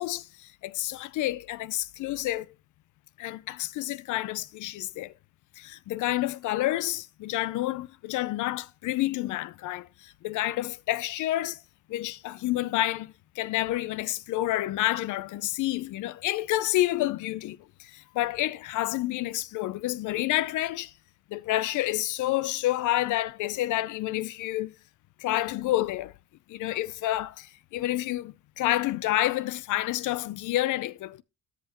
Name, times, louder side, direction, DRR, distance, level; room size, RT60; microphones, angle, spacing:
voice 1, 0.0-2.5 3.2-5.1 5.6-11.6 11.9-20.9 21.3-24.7 25.2-26.1 26.5-31.2, left 15 dB, 80° left, 0.5 m, -29 dB
13.0 x 5.8 x 2.9 m
cardioid pair, 90°, 30 cm